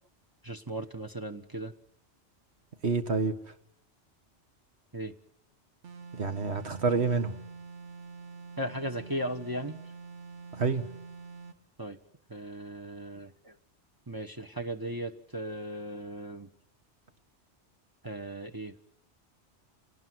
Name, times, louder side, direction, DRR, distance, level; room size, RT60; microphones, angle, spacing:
voice 1, 0.4-1.7 4.9-5.1 8.6-9.8 11.8-12.0 12.3-13.5 14.1-16.5 18.0-18.7, right 1 dB, 20° right, 4 dB, 1.2 m, -37 dB
voice 2, 2.8-3.5 6.1-7.3 10.5-10.9, right 4 dB, 65° right, 7 dB, 2.1 m, -28 dB
sound 1, 5.8-11.6, right 4 dB, 90° right, 1.6 m, -46 dB
28.0 x 18.5 x 9.6 m, 0.73 s
omnidirectional pair, 1.2 m